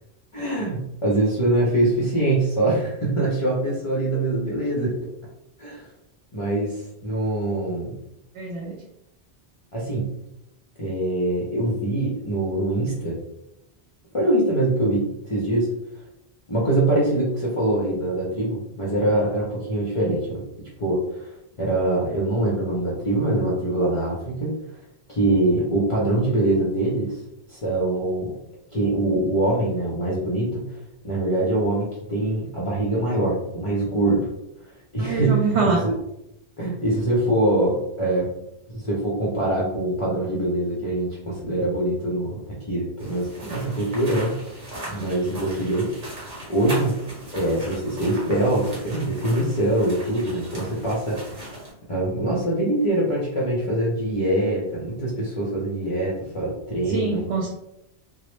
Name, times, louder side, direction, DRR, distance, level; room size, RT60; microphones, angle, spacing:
voice 1, 0.3-5.1 5.6-5.9 6.3-8.0 9.7-10.1 10.8-13.2 14.1-15.7 16.5-20.4 20.8-24.5 25.1-27.2 27.5-28.3 28.7-34.3 34.9-35.9 36.6-38.3 38.7-42.4 42.7-44.4 44.9-46.0 46.5-47.0 47.3-51.5 51.9-57.2, right 1 dB, 40° left, -6 dB, 0.5 m, -24 dB
voice 2, 8.4-8.7 35.0-35.8 56.9-57.5, right 4 dB, 80° right, -2 dB, 0.8 m, -24 dB
sound 1, 43.0-51.7, right 1 dB, 45° right, 0.9 m, -38 dB
2.0 x 2.0 x 3.0 m, 0.84 s
omnidirectional pair, 1.1 m